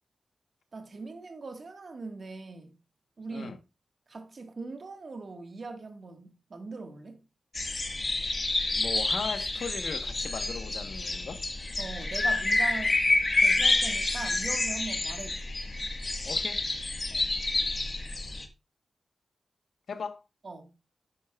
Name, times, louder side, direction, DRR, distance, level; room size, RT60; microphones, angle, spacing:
voice 1, 0.7-2.7 3.2-3.5 4.1-7.2 11.8-13.0 13.4-15.5 17.1-17.3 20.4-20.7, right 3 dB, 55° right, 1.6 m, -41 dB
sound 1, 7.6-18.5, left 2 dB, 40° left, 1.5 m, -28 dB
voice 2, 8.7-11.4 16.2-16.6 19.9-20.2, left 5 dB, 90° left, 1.1 m, -38 dB
11.5 x 8.6 x 2.3 m
wide cardioid pair, 90°, 0 cm